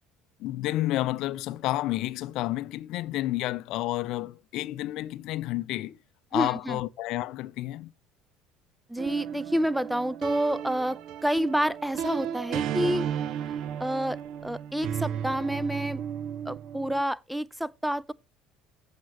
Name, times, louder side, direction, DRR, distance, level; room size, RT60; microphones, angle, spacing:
voice 1, 0.4-6.0 6.3-7.9, left 16 dB, 55° left, 0.5 m, -30 dB
voice 2, 6.3-6.8 8.9-13.1 13.8-16.0 16.5-18.1, equal, 5° right, 0.4 m, -29 dB
sound 1, 9.0-17.0, right 9 dB, 50° right, 0.6 m, -34 dB
14.5 x 5.1 x 3.2 m
figure-of-eight pair, 60°, 0 cm